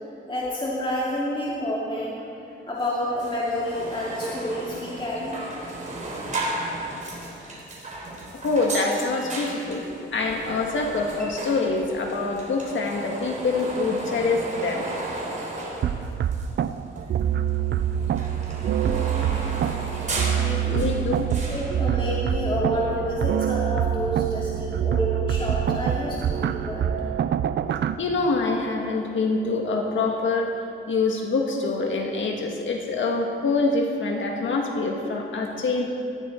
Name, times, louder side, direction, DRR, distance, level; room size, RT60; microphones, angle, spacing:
voice 1, 0.3-2.2 2.7-5.4 18.8-19.4 20.4-20.8 21.5-26.9, equal, 25° left, -6 dB, 2.6 m, -29 dB
sound 1, 2.8-2.9 3.2-16.7 17.0-21.7, right 2 dB, 35° right, 3.7 m, -35 dB
voice 2, 8.3-9.9 10.1-14.8 20.7-21.2 28.0-30.5 30.9-35.9, left 3 dB, 70° left, 1 dB, 1.7 m, -25 dB
sound 2, 15.8-27.9, right 9 dB, 60° right, 0.5 m, -25 dB
18.0 x 14.5 x 4.4 m, 2.6 s
wide cardioid pair, 120°, 21 cm